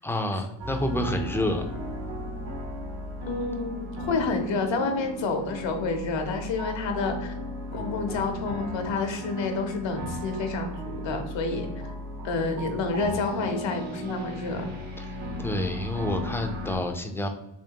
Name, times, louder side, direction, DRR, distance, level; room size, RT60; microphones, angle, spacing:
voice 1, 0.0-1.6 15.0-15.1 15.4-17.3, left 1 dB, 5° left, 4 dB, 0.4 m, -28 dB
sound 1, 0.6-16.8, left 1 dB, 80° right, 1.3 m, -36 dB
voice 2, 3.3-7.3 7.7-11.7 12.2-14.7, left 3 dB, 70° left, 5 dB, 0.9 m, -29 dB
3.6 x 3.1 x 2.8 m, 0.86 s
cardioid pair, 100°, 46 cm